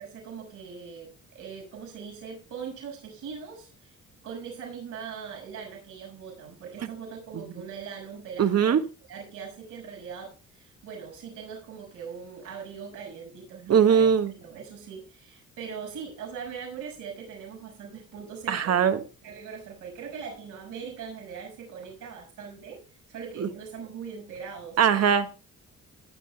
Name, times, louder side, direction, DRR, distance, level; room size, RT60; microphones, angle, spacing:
voice 1, 0.0-4.0 4.2-8.7 9.1-14.1 14.4-22.8 23.1-25.1, right 6 dB, 85° right, 6.0 m, -41 dB
voice 2, 8.4-8.9 13.7-14.3 18.5-19.0 23.4-23.5 24.8-25.4, right 7 dB, 55° right, 1.5 m, -21 dB
20.5 x 8.5 x 2.2 m
cardioid pair, 90°, 30 cm